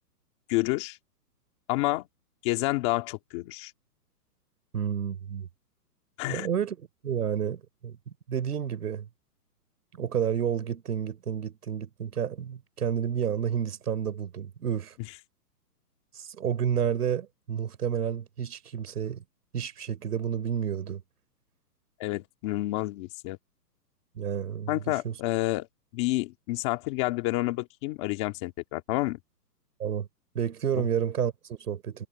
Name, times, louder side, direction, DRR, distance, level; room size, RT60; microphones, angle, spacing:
voice 1, 0.5-1.0 1.7-2.1 2.4-3.7 6.2-6.5 22.0-23.4 24.7-25.7 25.9-29.2 30.8-30.9, left 19 dB, 15° left, 2.1 m, -29 dB
voice 2, 4.7-5.5 6.3-6.8 7.0-8.0 8.3-9.1 10.0-14.9 16.2-19.2 19.5-21.0 24.2-25.1 29.8-30.1 30.4-32.1, right 8 dB, 65° right, 3.6 m, -30 dB
hypercardioid pair, 175°, 48 cm